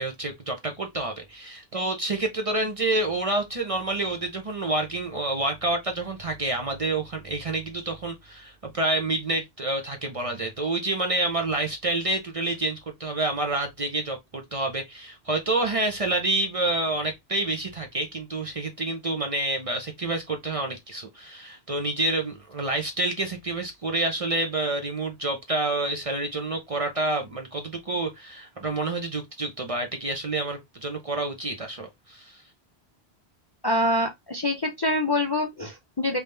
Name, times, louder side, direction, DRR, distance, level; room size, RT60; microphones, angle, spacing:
voice 1, 0.0-32.4, right 2 dB, 40° right, 0.6 m, -28 dB
voice 2, 33.6-36.2, left 1 dB, 30° left, 0.5 m, -25 dB
3.5 x 2.8 x 3.2 m
omnidirectional pair, 1.1 m